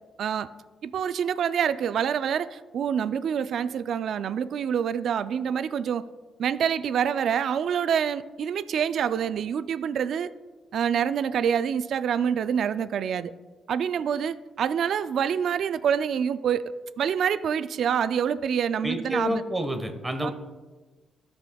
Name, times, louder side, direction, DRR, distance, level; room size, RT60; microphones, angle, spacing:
voice 1, 0.8-6.1 6.4-10.3 10.7-13.3 13.7-19.4 20.2-20.3, right 8 dB, 65° right, 14 dB, 0.3 m, -26 dB
voice 2, 18.8-20.3, equal, 15° right, 6 dB, 1.2 m, -29 dB
14.5 x 6.1 x 2.3 m, 1.3 s
cardioid pair, 90°, 0 cm